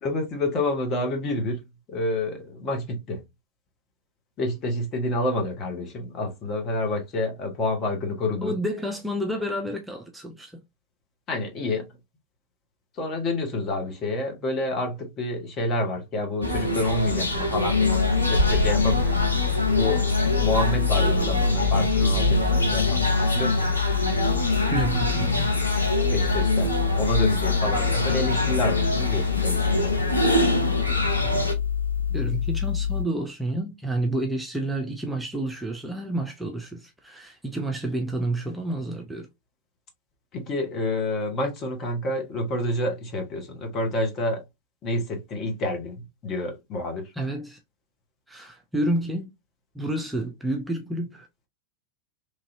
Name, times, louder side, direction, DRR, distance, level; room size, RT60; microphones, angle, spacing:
voice 1, 0.0-1.6 1.9-3.2 4.4-8.5 11.3-11.9 13.0-19.2 19.8-20.0 20.4-23.8 26.1-30.1 40.3-44.4 44.8-47.1, left 2 dB, 30° left, 1.0 m, -28 dB
voice 2, 8.4-10.6 21.7-21.9 24.7-25.5 31.1-31.4 32.1-39.3 47.1-47.6 48.3-49.3 49.7-51.3, right 1 dB, 5° right, 0.5 m, -30 dB
sound 1, 16.4-31.5, left 1 dB, 80° left, 0.7 m, -25 dB
sound 2, 17.7-33.0, left 8 dB, 85° right, 0.4 m, -26 dB
3.1 x 2.6 x 2.5 m
figure-of-eight pair, 90°, 0 cm